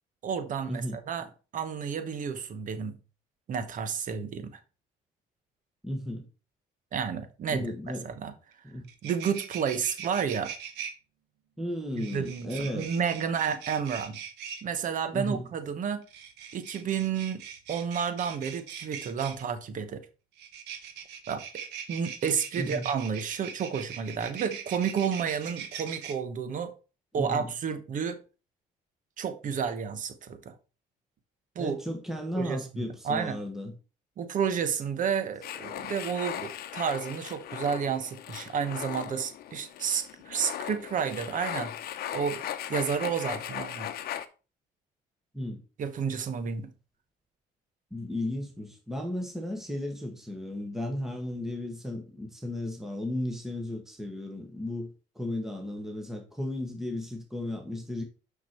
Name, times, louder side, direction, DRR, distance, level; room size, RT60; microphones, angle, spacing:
voice 1, 0.2-3.0 3.5-4.5 6.9-8.3 9.0-10.5 11.9-14.2 14.6-16.0 16.5-17.4 17.7-20.0 21.3-21.4 21.9-26.7 27.1-28.2 29.2-30.5 31.5-31.8 32.4-33.4 34.2-41.7 42.1-42.4 42.7-43.9 45.8-46.7, right 7 dB, 50° right, 1.1 m, -31 dB
voice 2, 5.8-6.2 7.5-8.1 8.6-8.9 11.6-12.9 15.1-15.5 22.6-22.9 27.2-27.4 31.6-33.7 45.3-45.6 47.9-58.0, left 1 dB, ahead, 1.4 m, -34 dB
sound 1, 8.5-8.6 8.8-10.9 12.0-14.6 16.0-19.4 20.4-26.1, right 8 dB, 85° right, 1.3 m, -41 dB
sound 2, 35.4-44.2, left 11 dB, 65° left, 0.8 m, -38 dB
6.0 x 6.0 x 4.4 m
cardioid pair, 110°, 17 cm